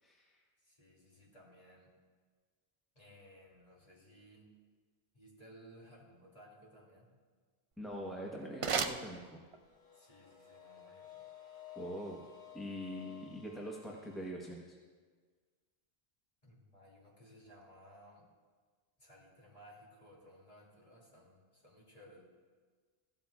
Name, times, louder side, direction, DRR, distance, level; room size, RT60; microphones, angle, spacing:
voice 1, 0.0-0.4 7.8-9.4 11.7-12.3 12.5-14.8, equal, ahead, -2 dB, 1.0 m, -43 dB
voice 2, 0.6-1.9 2.9-4.5 5.1-7.1 9.9-11.2 16.4-18.3 19.0-22.2, equal, 35° left, -4 dB, 2.6 m, -59 dB
sound 1, 7.7-9.8, right 5 dB, 50° right, 0.4 m, -38 dB
sound 2, 9.6-14.3, left 11 dB, 60° left, 1.5 m, -54 dB
15.5 x 12.0 x 2.4 m, 1.5 s
omnidirectional pair, 1.1 m